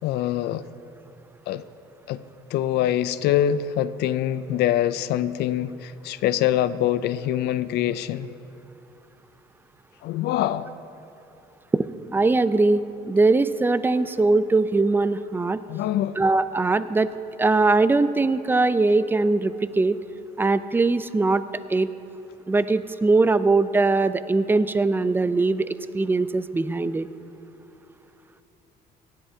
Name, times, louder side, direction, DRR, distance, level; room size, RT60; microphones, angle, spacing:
voice 1, 0.0-0.6 1.5-1.6 2.1-2.2 2.5-8.3 10.0-10.7 15.7-16.2, left 11 dB, 75° left, 0.4 m, -24 dB
voice 2, 12.1-15.6 16.2-17.1 17.4-20.0 20.4-21.4 21.7-21.9 22.5-25.7 25.9-27.1, right 3 dB, 10° right, 0.4 m, -21 dB
18.0 x 13.0 x 2.8 m
cardioid pair, 110°, 17 cm